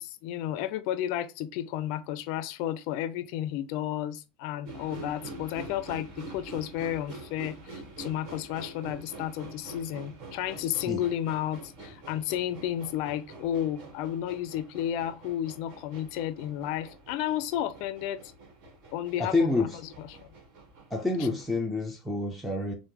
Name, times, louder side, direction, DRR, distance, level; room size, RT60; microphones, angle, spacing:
voice 1, 0.0-18.2 18.9-19.7 20.0-20.3 21.2-21.3, left 11 dB, 60° left, 0.4 m, -32 dB
sound 1, 4.7-21.4, right 2 dB, 55° right, 1.2 m, -46 dB
voice 2, 19.2-19.7 20.9-22.7, left 2 dB, ahead, 0.5 m, -28 dB
3.4 x 2.1 x 2.8 m
supercardioid pair, 120°, 0 cm